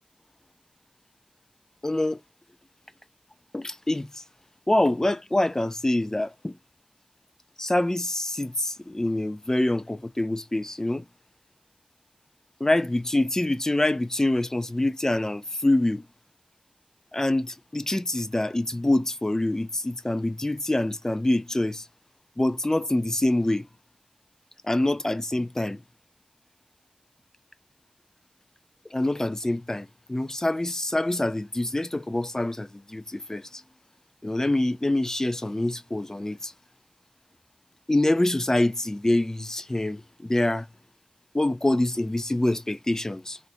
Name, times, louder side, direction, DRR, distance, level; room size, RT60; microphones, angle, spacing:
voice 1, 1.8-2.2 3.5-4.2 4.7-6.6 7.6-11.1 12.6-16.0 17.1-21.9 22.4-23.6 24.6-25.8 28.9-33.6 34.2-36.5 37.9-40.7 41.3-43.4, left 1 dB, 20° left, 0.4 m, -25 dB
4.0 x 2.5 x 2.6 m
wide cardioid pair, 60°, 2 cm